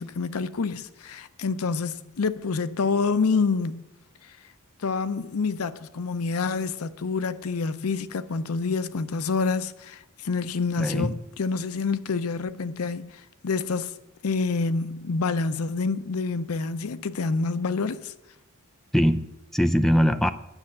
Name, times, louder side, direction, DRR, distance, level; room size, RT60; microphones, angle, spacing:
voice 1, 0.0-3.8 4.8-13.9 14.2-18.1, left 4 dB, 85° left, 0.6 m, -27 dB
voice 2, 10.8-11.2 18.9-20.3, equal, ahead, 0.5 m, -22 dB
10.0 x 6.5 x 8.6 m
head